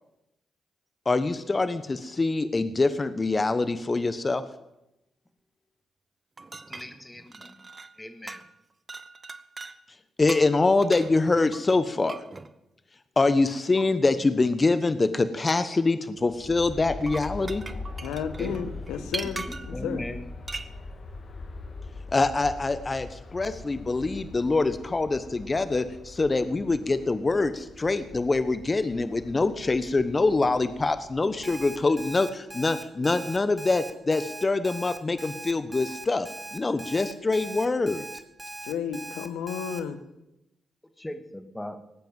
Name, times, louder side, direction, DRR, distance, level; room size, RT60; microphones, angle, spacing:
voice 1, 1.0-4.4 10.2-12.2 13.2-17.6 22.1-38.0, left 3 dB, 35° left, 12 dB, 1.2 m, -25 dB
sound 1, 6.4-8.0 8.3-8.6 8.9-9.8 10.3-12.5 13.8-13.9 16.9-19.8 20.5-20.7, right 3 dB, 35° right, 1.1 m, -40 dB
voice 2, 6.7-7.6 8.0-8.4 18.4-18.7 19.0-20.3 41.0-41.8, left 1 dB, 15° left, 8 dB, 2.1 m, -38 dB
Aircraft, 16.2-32.2, left 3 dB, 55° left, 2.6 m, -42 dB
voice 3, 18.0-20.0 38.6-40.0, left 7 dB, 80° left, 11 dB, 1.3 m, -32 dB
Alarm, 31.4-39.8, right 2 dB, 15° right, 1.9 m, -40 dB
19.0 x 9.1 x 7.6 m, 0.89 s
hypercardioid pair, 45°, 0 cm